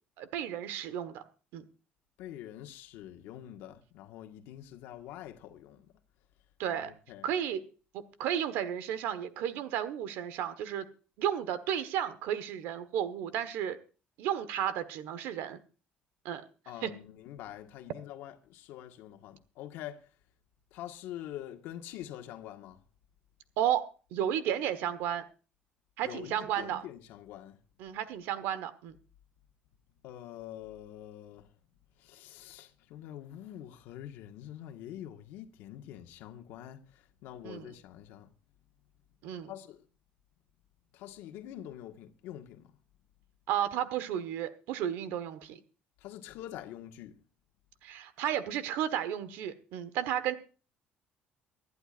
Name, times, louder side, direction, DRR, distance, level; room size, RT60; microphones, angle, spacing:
voice 1, 0.2-1.2 1.5-1.6 6.6-6.9 7.2-7.6 8.2-10.8 11.2-13.8 14.2-15.6 16.2-16.4 16.8-16.9 23.6-23.8 24.1-25.2 26.0-26.8 27.8-29.0 37.4-37.7 39.2-39.5 43.5-45.6 47.8-50.3, right 10 dB, 80° right, 1.3 m, -33 dB
voice 2, 2.2-5.9 6.7-7.3 16.6-20.0 20.7-22.8 26.0-27.6 30.0-31.5 32.0-38.3 39.5-39.8 40.9-42.7 46.0-47.1, left 12 dB, 80° left, 1.6 m, -45 dB
24.5 x 11.5 x 2.5 m
cardioid pair, 180°, 4 cm